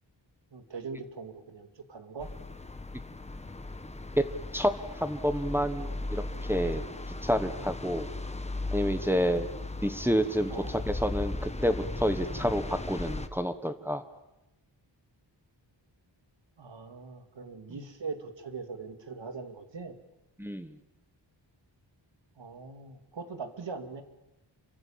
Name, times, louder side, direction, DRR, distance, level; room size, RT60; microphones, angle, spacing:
voice 1, 0.5-2.3 10.5-10.8 16.6-19.9 22.4-24.0, right 4 dB, 70° right, 7 dB, 2.7 m, -41 dB
sound 1, 2.2-13.3, left 2 dB, 15° left, 1.2 m, -37 dB
voice 2, 4.5-6.8 7.2-8.1 8.7-9.5 9.8-14.0 17.7-17.8 20.4-20.7, equal, 5° right, 8 dB, 1.3 m, -29 dB
28.0 x 24.5 x 7.4 m, 0.92 s
wide cardioid pair, 165°, 46 cm